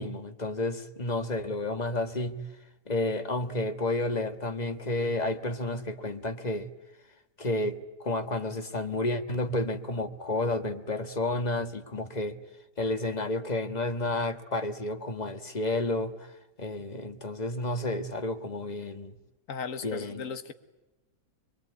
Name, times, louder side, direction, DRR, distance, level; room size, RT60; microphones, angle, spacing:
voice 1, 0.0-2.4 2.9-6.7 7.4-12.4 12.8-19.1 19.8-20.3, left 2 dB, 25° left, 9 dB, 1.5 m, -31 dB
voice 2, 19.5-20.5, left 6 dB, 50° left, 11 dB, 1.8 m, -36 dB
25.5 x 22.5 x 9.6 m, 1.0 s
omnidirectional pair, 1.8 m